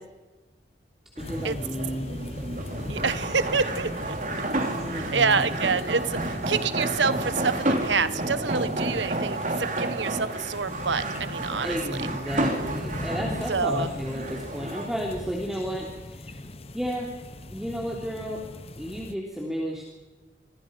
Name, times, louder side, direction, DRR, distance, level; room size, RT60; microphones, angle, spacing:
sound 1, 1.2-19.2, left 1 dB, 35° left, 1.0 m, -38 dB
voice 1, 1.2-2.2 4.7-5.6 11.6-16.4 16.7-17.2 17.5-18.5 18.8-19.8, equal, ahead, -2 dB, 3.1 m, -32 dB
sound 2, 1.2-14.9, right 2 dB, 45° right, 2.8 m, -31 dB
voice 2, 2.9-4.2 5.1-11.8 13.5-13.9, right 5 dB, 80° right, 13 dB, 1.2 m, -27 dB
26.0 x 25.0 x 5.3 m, 1.2 s
head